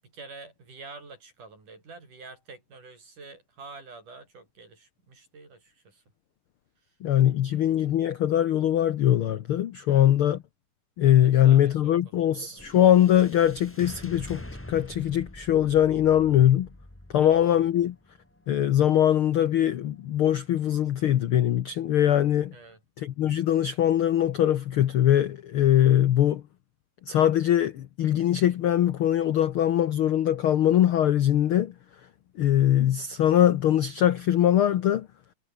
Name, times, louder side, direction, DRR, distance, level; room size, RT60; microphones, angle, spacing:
voice 1, 0.0-6.0 6.8-7.0 7.4-7.7 9.8-10.1 11.2-12.7 17.2-17.4 22.5-22.8, right 3 dB, 70° right, 9.0 m, -48 dB
voice 2, 7.0-10.4 11.0-14.4 14.7-16.7 17.1-17.9 18.5-22.5 23.0-26.4 27.1-31.7 32.4-35.1, left 11 dB, 80° left, 1.2 m, -22 dB
sound 1, 12.6-21.0, left 1 dB, 5° left, 1.3 m, -46 dB
omnidirectional pair, 3.7 m